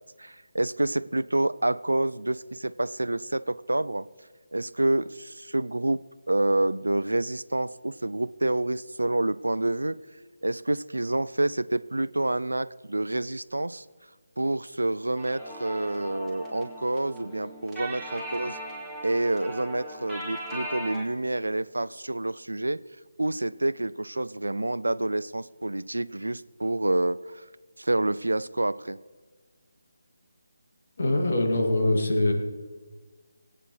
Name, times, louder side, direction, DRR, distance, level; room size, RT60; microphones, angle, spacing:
voice 1, 0.2-4.1 4.5-6.0 6.3-10.0 10.4-13.8 14.4-18.6 19.0-22.8 23.2-27.4 27.8-29.0, right 2 dB, 80° right, 18 dB, 0.4 m, -28 dB
sound 1, 15.2-21.0, right 1 dB, 5° left, 2.8 m, -39 dB
voice 2, 31.0-32.3, left 1 dB, 55° left, 2 dB, 2.6 m, -23 dB
19.5 x 9.0 x 4.8 m, 1.4 s
figure-of-eight pair, 155°, 0 cm